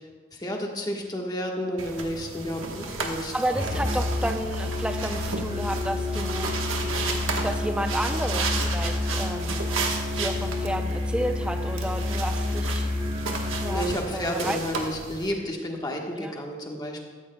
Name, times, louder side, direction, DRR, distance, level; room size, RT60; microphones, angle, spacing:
voice 1, 0.3-3.6 13.7-17.0, equal, 20° left, 1 dB, 1.3 m, -31 dB
sound 1, 1.8-15.3, right 4 dB, 70° right, 1.2 m, -33 dB
voice 2, 3.3-6.5 7.4-9.7 10.2-12.9 13.6-13.9 14.1-14.6 16.2-16.3, right 1 dB, 5° right, 7 dB, 0.5 m, -31 dB
Musical instrument, 3.5-13.9, left 2 dB, 25° right, 1.6 m, -29 dB
14.5 x 13.5 x 2.3 m, 1.5 s
head